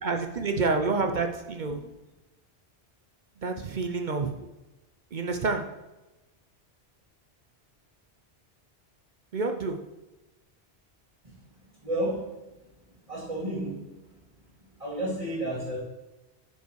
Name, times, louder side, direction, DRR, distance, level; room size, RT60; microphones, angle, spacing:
voice 1, 0.0-1.8 3.4-4.4 5.1-5.6 9.3-9.8, right 3 dB, 50° right, 5 dB, 0.8 m, -28 dB
voice 2, 11.8-12.4 13.1-14.1 14.8-15.8, right 1 dB, 35° right, -10 dB, 2.5 m, -32 dB
9.7 x 5.4 x 4.6 m, 1.0 s
omnidirectional pair, 1.1 m